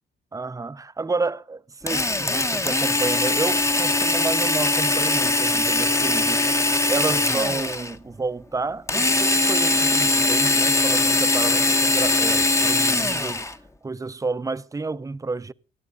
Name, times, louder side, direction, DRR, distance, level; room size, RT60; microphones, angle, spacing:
voice 1, 0.3-13.5 13.8-15.5, right 3 dB, 15° right, 0.6 m, -30 dB
Drill, 1.9-7.9 8.9-13.5, left 2 dB, 15° left, 0.9 m, -21 dB
20.0 x 13.5 x 3.8 m
cardioid pair, 90°, 20 cm